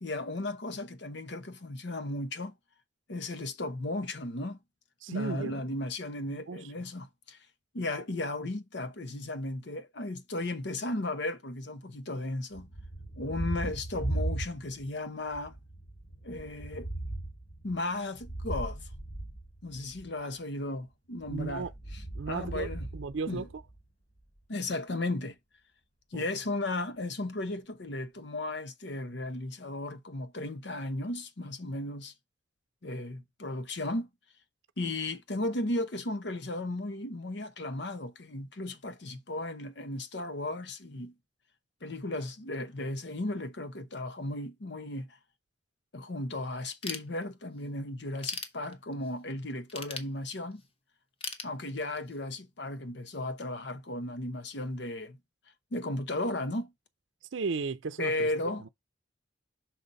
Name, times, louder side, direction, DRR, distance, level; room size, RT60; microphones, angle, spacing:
voice 1, 0.0-2.5 3.1-4.6 5.1-7.4 7.7-12.7 13.2-15.6 16.2-16.9 17.6-18.8 19.6-22.9 23.3-23.5 24.5-25.3 26.1-32.1 32.8-34.1 34.8-41.1 41.8-45.2 45.9-50.6 51.4-55.2 55.7-56.7 58.0-58.6, left 2 dB, 65° left, 0.8 m, -35 dB
voice 2, 5.0-5.5 6.3-6.6 21.3-21.7 22.2-23.5 26.1-26.3 57.3-58.3 58.6-58.7, right 4 dB, 85° right, 0.5 m, -35 dB
Thunder, 12.5-15.0 15.3-20.1 21.2-23.8, right 2 dB, 45° left, 2.5 m, -38 dB
Ratchet pawl / Tools, 46.8-47.6 48.0-49.1 49.7-50.7 51.2-52.2, left 4 dB, 30° left, 0.8 m, -39 dB
5.8 x 4.1 x 5.2 m
head